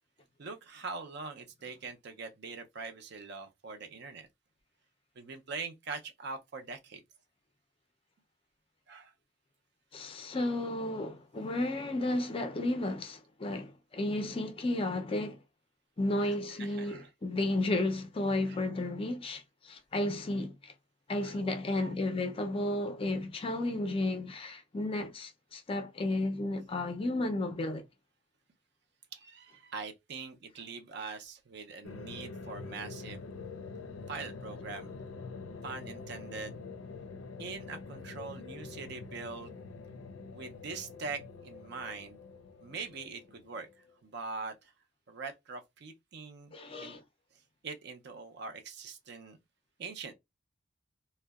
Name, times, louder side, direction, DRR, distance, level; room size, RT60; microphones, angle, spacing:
voice 1, 0.4-4.3 5.2-7.0 8.9-9.1 16.2-17.1 18.5-18.6 21.2-21.4 21.8-21.9 29.1-33.2 34.1-34.9 35.6-36.6 37.4-39.6 40.3-42.2 42.6-43.7 44.0-44.7 45.1-47.0 47.6-49.4 49.8-50.1, right 4 dB, 60° right, 0.5 m, -43 dB
voice 2, 9.9-15.4 16.0-20.7 21.1-27.8 46.5-47.0, left 1 dB, 30° left, 0.4 m, -33 dB
sound 1, 31.8-43.9, left 4 dB, 90° left, 0.4 m, -45 dB
2.6 x 2.1 x 2.3 m
head